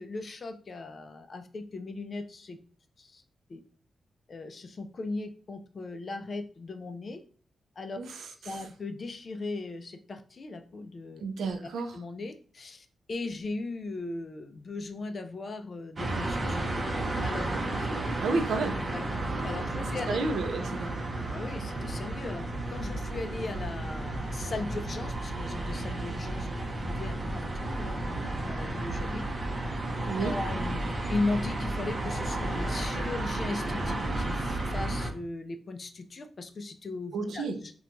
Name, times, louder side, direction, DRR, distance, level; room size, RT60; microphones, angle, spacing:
voice 1, 0.0-2.6 3.0-3.2 3.5-3.6 4.3-7.2 7.8-8.0 8.4-11.2 11.6-16.7 17.2-17.5 18.9-19.0 19.4-20.2 21.2-29.2 30.2-37.7, left 3 dB, 45° left, 7 dB, 0.3 m, -38 dB
voice 2, 8.0-8.6 11.2-11.9 18.2-18.8 20.1-20.9 30.0-30.4 37.1-37.6, right 3 dB, 90° right, 6 dB, 0.4 m, -31 dB
sound 1, 16.0-35.1, right 2 dB, 40° right, 0.6 m, -32 dB
2.8 x 2.2 x 2.5 m, 0.42 s
cardioid pair, 90°, 0 cm